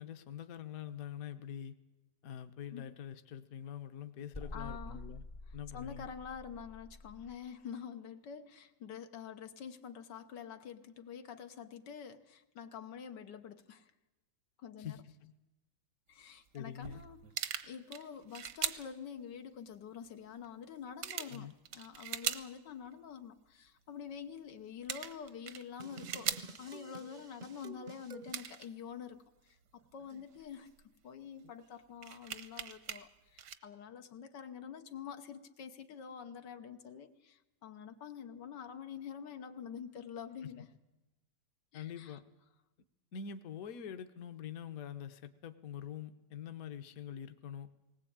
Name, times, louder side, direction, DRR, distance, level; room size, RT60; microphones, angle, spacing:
voice 1, 0.0-1.7 2.2-5.2 5.5-6.1 14.8-15.3 16.5-17.0 21.3-21.5 40.4-40.7 41.7-42.2 43.1-47.7, left 8 dB, 60° left, 9 dB, 1.3 m, -45 dB
sound 1, 4.3-7.4, left 2 dB, 35° left, 0.5 m, -48 dB
voice 2, 4.5-5.0 5.5-13.9 14.6-15.0 16.1-29.6 29.9-30.7 31.0-40.7 41.7-42.2, left 7 dB, 90° left, 7 dB, 1.8 m, -47 dB
sound 2, 16.6-16.7 16.8-18.9 20.0-20.1 20.4-20.5 21.0-22.5 22.9-23.0 24.5-24.6 24.8-26.6 27.5-27.6 28.3-28.7 29.8-30.8 31.4-31.5 32.0-33.0 33.4-33.6, right 9 dB, 80° right, 1.5 m, -40 dB
sound 3, 25.8-28.4, right 3 dB, 45° right, 0.6 m, -50 dB
19.5 x 18.5 x 8.7 m, 1.0 s
omnidirectional pair, 1.8 m